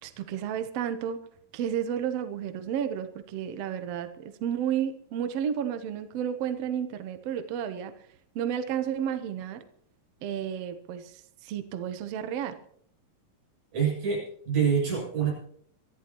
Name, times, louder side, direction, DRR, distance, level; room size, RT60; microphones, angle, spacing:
voice 1, 0.0-1.3 1.5-7.9 8.3-9.6 10.2-12.6, right 9 dB, 85° right, 9 dB, 1.4 m, -32 dB
voice 2, 13.7-15.3, right 7 dB, 50° right, -3 dB, 9.1 m, -26 dB
25.0 x 14.0 x 3.0 m, 0.63 s
omnidirectional pair, 4.3 m